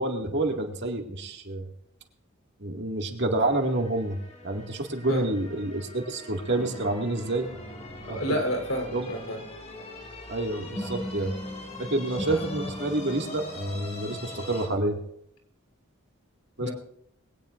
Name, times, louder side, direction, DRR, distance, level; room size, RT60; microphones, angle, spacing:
voice 1, 0.0-1.7 2.6-7.5 8.0-8.4 8.9-9.1 10.3-11.3 11.8-15.0 16.6-16.7, right 2 dB, 60° right, 3 dB, 2.1 m, -28 dB
sound 1, 3.4-14.7, left 2 dB, 35° left, 2.7 m, -43 dB
sound 2, 6.5-9.5 10.8-14.8, left 1 dB, 10° left, 1.3 m, -40 dB
voice 2, 8.1-9.4 16.6-16.7, equal, 75° left, 3 dB, 3.8 m, -29 dB
21.5 x 17.5 x 2.6 m, 0.72 s
head